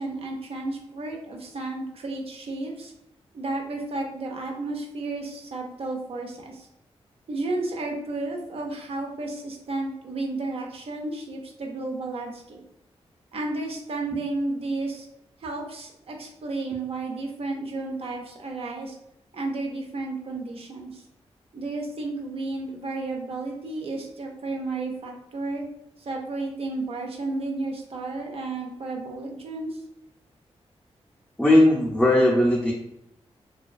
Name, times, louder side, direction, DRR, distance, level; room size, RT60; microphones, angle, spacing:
voice 1, 0.0-2.9 3.3-6.7 7.3-12.6 13.3-15.1 15.4-19.0 19.3-21.0 21.5-25.6 26.0-29.8, right 2 dB, 60° right, 1 dB, 0.5 m, -32 dB
voice 2, 31.4-32.7, left 1 dB, 5° left, -4 dB, 0.4 m, -18 dB
2.4 x 2.2 x 2.4 m, 0.82 s
wide cardioid pair, 85°, 11 cm